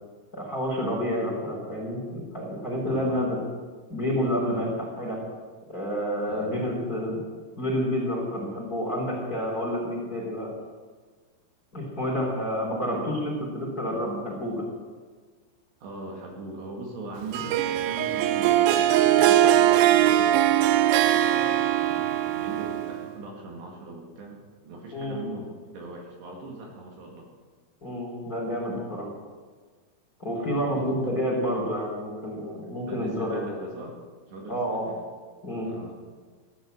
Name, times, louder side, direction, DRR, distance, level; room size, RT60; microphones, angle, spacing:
voice 1, 0.3-3.4 3.9-5.2 5.7-7.2 7.6-10.5 11.7-14.7 24.9-25.2 27.8-29.1 30.2-33.5 34.5-34.9 35.4-35.7, equal, 20° left, -2 dB, 3.5 m, -29 dB
voice 2, 2.8-3.3 4.5-4.7 6.2-6.5 15.8-20.4 21.0-27.3 30.4-31.0 32.8-34.0 34.3-34.9 35.6-36.0, right 2 dB, 65° right, 0 dB, 3.9 m, -41 dB
Harp, 17.3-23.1, right 12 dB, 90° right, 2.5 m, -21 dB
16.0 x 11.5 x 7.8 m, 1.5 s
omnidirectional pair, 5.6 m